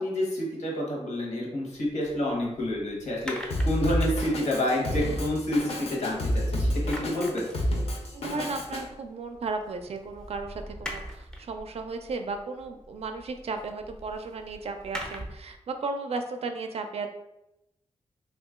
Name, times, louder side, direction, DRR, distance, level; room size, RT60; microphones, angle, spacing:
voice 1, 0.0-6.2 6.5-7.4, left 1 dB, 80° left, -2 dB, 1.0 m, -28 dB
sound 1, 1.7-6.4 6.6-15.5, equal, 5° left, 0.5 m, -44 dB
Drum kit, 3.5-8.8, equal, 60° left, 0.6 m, -29 dB
voice 2, 8.1-17.1, right 3 dB, 60° right, 6 dB, 0.4 m, -35 dB
2.9 x 2.4 x 3.5 m, 0.88 s
wide cardioid pair, 135°, 12 cm